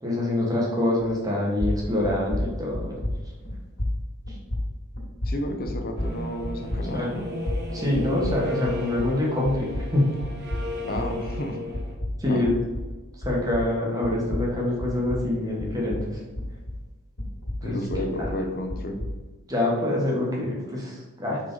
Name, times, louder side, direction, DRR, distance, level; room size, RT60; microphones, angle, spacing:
voice 1, 0.0-3.0 4.3-4.4 6.9-7.1 7.7-10.1 12.2-12.6 13.2-16.2 17.6-18.3 19.5-21.4, left 1 dB, 15° right, -4 dB, 1.5 m, -25 dB
sound 1, 1.2-1.3 1.6-9.2 9.5-13.8 14.0-16.9 17.2-19.2, left 1 dB, 80° left, 2.0 m, -32 dB
voice 2, 5.2-7.3 10.9-11.6 12.3-12.5 17.6-19.0, left 1 dB, 40° left, 5 dB, 0.8 m, -31 dB
sound 2, 6.0-11.9, left 1 dB, 50° right, 1.5 m, -35 dB
5.4 x 4.9 x 4.0 m, 1.2 s
head